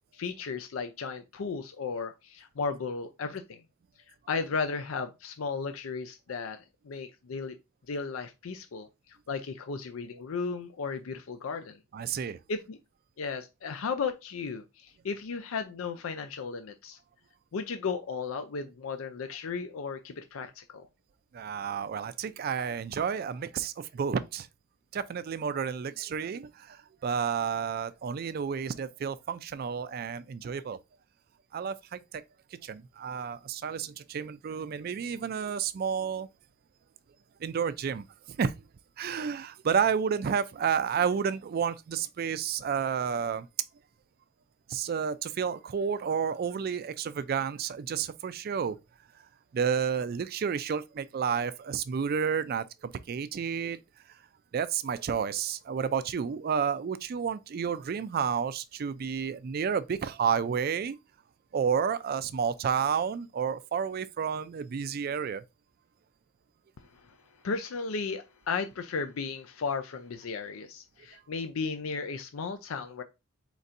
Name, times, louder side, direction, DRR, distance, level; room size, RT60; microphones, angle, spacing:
voice 1, 0.1-3.6 4.3-6.6 6.8-7.6 7.9-11.8 12.5-12.8 13.2-17.0 17.5-20.9 67.0-67.1 67.4-73.0, left 5 dB, 85° left, 0.5 m, -35 dB
voice 2, 11.9-12.4 21.3-24.5 24.9-30.8 31.5-32.2 32.6-36.3 37.4-38.5 39.0-43.5 44.7-48.8 49.5-53.8 54.5-61.0 61.5-65.4, right 7 dB, 45° right, 0.3 m, -31 dB
4.4 x 4.0 x 2.5 m
head